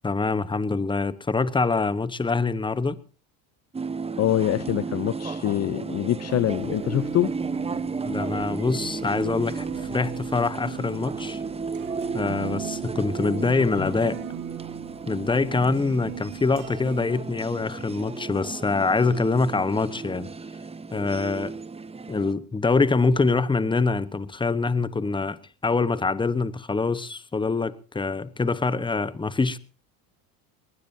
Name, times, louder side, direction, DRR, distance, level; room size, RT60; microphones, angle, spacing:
voice 1, 0.0-3.0 8.0-9.7 9.9-11.4 12.1-14.2 15.1-20.3 20.9-21.5 22.1-25.4 25.6-29.6, left 4 dB, 10° left, 1.1 m, -24 dB
sound 1, 3.7-22.3, right 4 dB, 15° right, 1.0 m, -34 dB
voice 2, 4.2-7.3 13.8-13.9, left 13 dB, 40° left, 0.7 m, -25 dB
sound 2, 6.3-17.1, right 12 dB, 85° right, 2.2 m, -41 dB
22.5 x 19.0 x 2.8 m
supercardioid pair, 95°, 42 cm